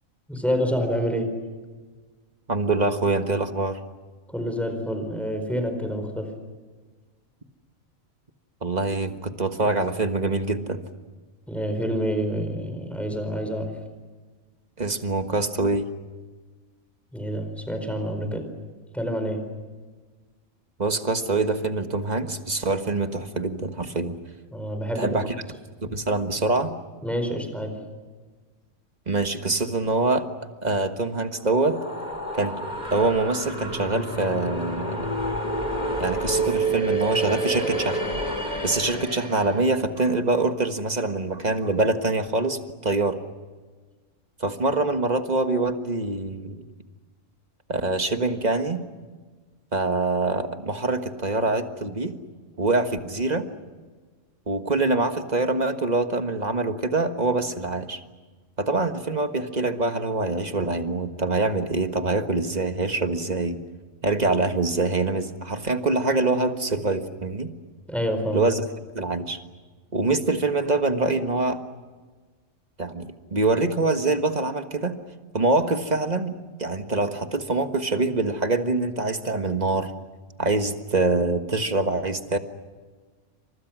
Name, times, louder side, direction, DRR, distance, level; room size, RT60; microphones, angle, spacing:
voice 1, 0.3-1.3 4.3-6.3 11.5-13.7 17.1-18.5 18.9-19.5 24.5-25.3 27.0-27.8 67.9-68.4, equal, ahead, 6 dB, 4.6 m, -27 dB
voice 2, 2.5-3.8 8.6-10.8 14.8-15.9 20.8-24.2 24.9-25.4 25.9-26.7 29.1-30.3 30.6-31.8 32.3-32.6 32.9-35.1 36.0-38.0 38.6-43.2 44.4-46.6 47.7-48.8 49.7-52.1 52.6-53.5 54.5-58.0 58.6-63.6 64.0-67.5 68.3-68.7 68.9-69.4 69.9-71.6 72.8-75.0 75.3-79.9 80.4-82.4, right 3 dB, 30° right, 7 dB, 1.5 m, -24 dB
sound 1, 31.3-39.7, right 2 dB, 30° left, 5.1 m, -29 dB
29.5 x 26.0 x 6.2 m, 1.4 s
omnidirectional pair, 1.5 m